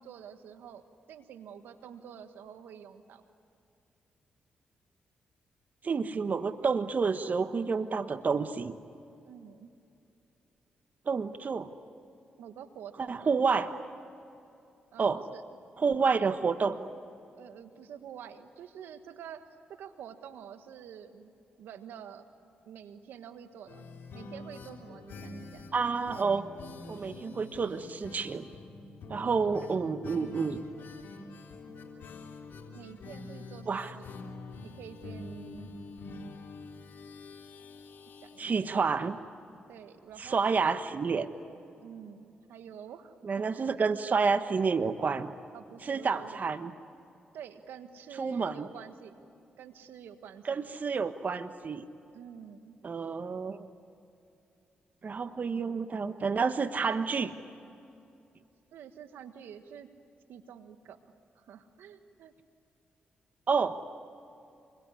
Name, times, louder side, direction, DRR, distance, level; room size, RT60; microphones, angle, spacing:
voice 1, 0.0-3.2 9.3-9.7 12.4-13.3 14.9-15.4 17.4-19.4 19.7-21.3 21.6-22.3 22.6-23.8 24.1-25.7 29.2-29.6 32.7-34.0 34.6-35.7 38.2-38.5 39.7-40.4 41.8-43.7 45.5-46.4 47.3-49.1 49.6-50.6 52.1-52.8 58.7-59.9 60.3-61.0 61.3-62.3, right 8 dB, 80° right, 9 dB, 1.4 m, -48 dB
voice 2, 5.8-8.8 11.1-11.7 13.1-13.7 15.0-15.2 15.8-16.8 25.7-26.4 26.9-28.4 29.1-30.6 33.7-33.9 38.4-39.2 40.2-41.3 43.2-45.3 45.9-46.7 48.2-48.7 50.4-51.9 52.8-53.7 55.0-57.3 63.5-63.8, right 5 dB, 50° right, 10 dB, 1.3 m, -29 dB
sound 1, 23.7-39.3 39.6-39.7 40.0-40.1, left 3 dB, 70° left, 3.4 m, -46 dB
27.0 x 22.5 x 9.8 m, 2.7 s
supercardioid pair, 50°, 4 cm